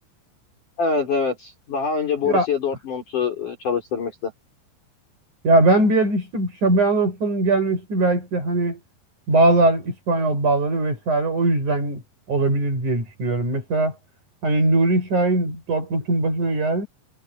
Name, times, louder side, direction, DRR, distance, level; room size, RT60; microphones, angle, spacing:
voice 1, 0.8-4.3, left 5 dB, 45° left, 6.5 m, -24 dB
voice 2, 5.4-8.8 9.3-12.0 12.3-13.9 14.4-16.9, right 2 dB, 40° right, 8.4 m, -20 dB
omnidirectional pair, 5.2 m